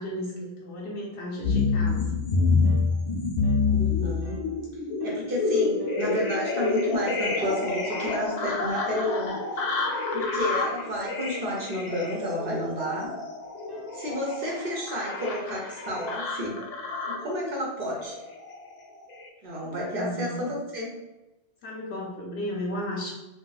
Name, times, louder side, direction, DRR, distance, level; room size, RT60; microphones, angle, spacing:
voice 1, 0.0-2.1 19.6-20.4 21.6-23.1, equal, 80° left, -3 dB, 0.8 m, -34 dB
sound 1, 1.4-17.3 18.0-18.7 19.1-19.3, left 4 dB, 55° left, 0.5 m, -28 dB
sound 2, 2.6-2.9 3.4-3.7 4.2-4.5 5.0-5.3 5.8-6.1 6.6-6.9 7.4-7.7 8.2-8.5 8.9-9.3 9.7-10.0 10.5-10.9 11.3-11.7 12.1-12.4 12.9-13.2 13.7-14.0 14.5-14.8, left 1 dB, 25° right, 0.6 m, -47 dB
voice 2, 3.7-4.4 5.0-9.6 10.1-13.1 13.9-16.6 17.1-18.2 19.4-20.9, equal, 60° right, -3 dB, 0.8 m, -31 dB
2.4 x 2.2 x 3.8 m, 1.0 s
omnidirectional pair, 1.1 m